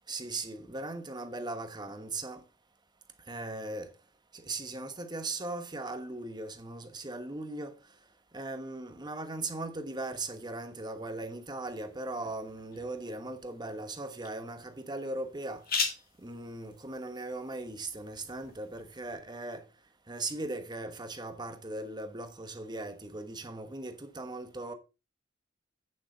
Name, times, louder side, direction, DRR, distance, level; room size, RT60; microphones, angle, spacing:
voice 1, 0.1-2.4 3.3-3.9 4.3-7.7 8.3-15.6 16.2-19.7 20.1-24.7, right 2 dB, 20° right, 1.2 m, -38 dB
sound 1, 11.7-19.2, left 5 dB, 45° left, 2.3 m, -41 dB
9.0 x 7.1 x 4.0 m
head